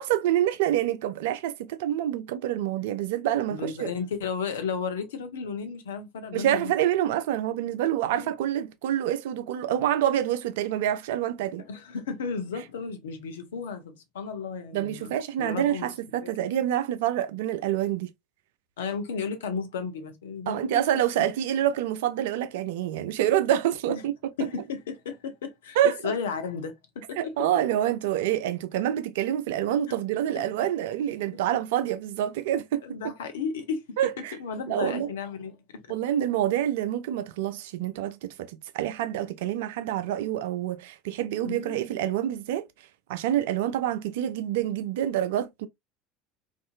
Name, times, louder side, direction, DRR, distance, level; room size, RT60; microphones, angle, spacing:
voice 1, 0.0-3.9 6.3-11.6 14.7-18.1 20.5-24.1 25.8-26.1 27.1-32.8 34.0-34.4 34.7-35.1 35.9-42.7 43.1-45.7, right 11 dB, 65° right, 0.3 m, -27 dB
voice 2, 3.5-6.7 8.1-8.3 11.6-15.1 15.4-15.9 16.2-16.3 18.8-20.8 23.9-24.0 24.4-25.8 26.0-27.5 29.9-30.0 30.3-30.4 32.8-35.6 35.9-36.0 41.4-41.8, left 5 dB, 70° left, 0.6 m, -34 dB
2.6 x 2.5 x 2.4 m
figure-of-eight pair, 70°, 0 cm